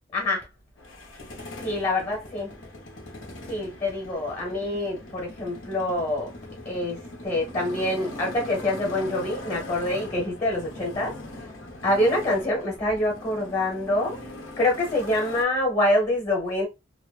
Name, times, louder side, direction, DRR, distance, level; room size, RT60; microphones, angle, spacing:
voice 1, 0.1-0.5 1.6-2.5 3.5-6.3 6.6-11.1 11.8-14.2 14.6-16.7, left 1 dB, 30° left, 1.0 m, -26 dB
Motorcycle, 0.8-15.4, left 1 dB, 85° left, 0.9 m, -41 dB
2.8 x 2.1 x 2.4 m
head